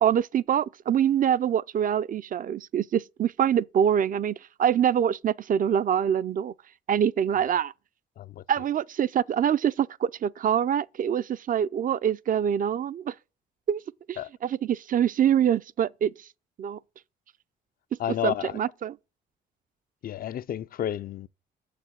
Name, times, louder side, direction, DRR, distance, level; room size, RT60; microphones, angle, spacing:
voice 1, 0.0-6.5 6.9-7.7 8.5-13.1 13.7-13.8 14.1-16.1 16.6-16.8 18.2-18.9, right 9 dB, 45° right, 0.4 m, -25 dB
voice 2, 18.0-18.6 20.0-21.3, left 11 dB, 45° left, 0.4 m, -31 dB
6.7 x 6.7 x 7.8 m
cardioid pair, 90°, 20 cm